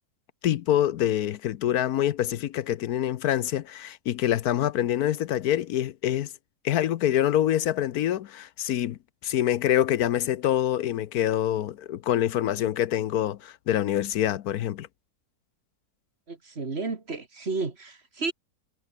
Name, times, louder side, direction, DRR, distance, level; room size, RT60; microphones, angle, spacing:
voice 1, 0.4-6.3 6.6-14.9, left 12 dB, 75° left, 1.2 m, -26 dB
voice 2, 16.3-18.3, right 3 dB, 40° right, 2.4 m, -32 dB
omnidirectional pair, 1.6 m